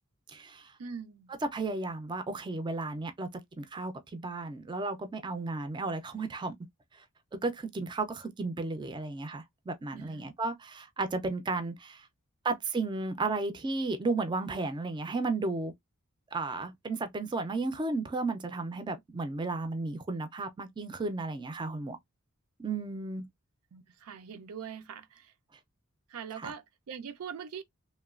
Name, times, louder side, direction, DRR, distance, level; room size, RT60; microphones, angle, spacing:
voice 1, 0.3-0.7 1.4-3.3 3.6-6.6 6.9-7.0 7.3-12.1 12.4-15.7 16.3-22.0 22.6-23.3 26.4-26.5, right 3 dB, 20° right, 0.4 m, -34 dB
voice 2, 0.8-1.3 9.9-10.3 23.7-25.3 26.1-27.6, right 7 dB, 90° right, 0.4 m, -42 dB
3.0 x 2.2 x 2.3 m
head